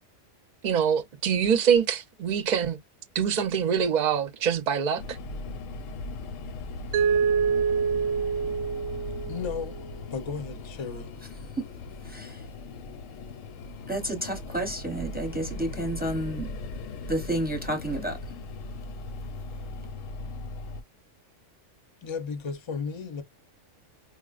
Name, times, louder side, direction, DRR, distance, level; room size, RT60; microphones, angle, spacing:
voice 1, 0.6-2.8 3.1-5.2, right 7 dB, 45° right, 0.6 m, -24 dB
sound 1, 5.0-20.8, left 3 dB, 85° left, 1.0 m, -38 dB
Mallet percussion, 6.9-9.8, right 6 dB, 90° right, 1.0 m, -26 dB
voice 2, 9.2-9.7 10.1-11.1 22.0-23.2, left 5 dB, 35° left, 0.5 m, -34 dB
voice 3, 12.0-12.4 13.9-16.5 17.1-18.2, right 1 dB, 10° right, 0.7 m, -30 dB
4.5 x 2.0 x 2.4 m
omnidirectional pair, 1.3 m